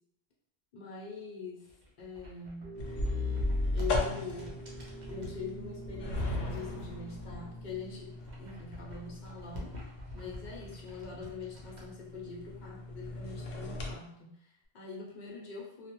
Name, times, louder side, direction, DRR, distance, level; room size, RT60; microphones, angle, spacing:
voice 1, 0.7-1.7 2.0-2.7 3.7-4.6 5.1-15.9, left 5 dB, 55° left, -3 dB, 0.7 m, -43 dB
sound 1, 1.6-5.4 6.1-7.4 7.7-11.8, left 1 dB, 50° right, 0.7 m, -49 dB
sound 2, 2.6-8.7, right 3 dB, 70° right, 1.0 m, -49 dB
sound 3, 2.8-14.0, left 2 dB, 85° left, 0.8 m, -37 dB
2.3 x 2.1 x 2.9 m, 0.76 s
omnidirectional pair, 1.0 m